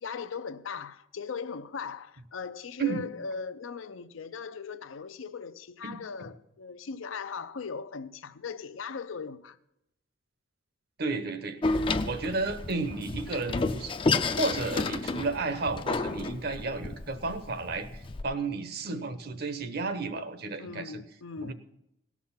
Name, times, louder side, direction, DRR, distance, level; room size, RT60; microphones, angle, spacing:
voice 1, 0.0-9.6 20.6-21.5, left 5 dB, 85° left, 0.5 m, -39 dB
voice 2, 11.0-21.0 21.4-21.5, right 3 dB, 50° right, 0.8 m, -33 dB
Door, 11.6-18.2, left 3 dB, 25° left, 0.4 m, -30 dB
17.5 x 6.1 x 5.7 m
head